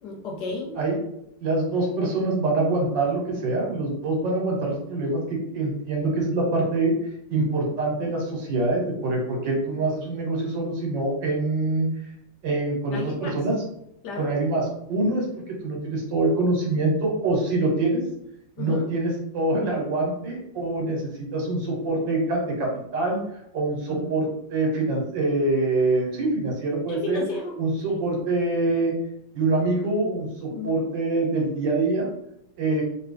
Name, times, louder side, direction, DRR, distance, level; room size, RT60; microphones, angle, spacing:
voice 1, 0.0-0.7 12.9-13.4 14.0-14.3 18.6-18.9 23.9-24.1 26.9-27.6 27.9-28.0 30.5-30.7, left 3 dB, 70° left, 0 dB, 1.2 m, -33 dB
voice 2, 1.4-6.9 7.3-11.9 12.4-13.5 14.2-18.0 18.6-21.0 21.3-23.2 23.5-27.2 27.6-28.9 29.3-32.1 32.6-32.8, right 2 dB, 75° right, -1 dB, 1.7 m, -25 dB
3.0 x 3.0 x 3.3 m, 0.77 s
omnidirectional pair, 2.0 m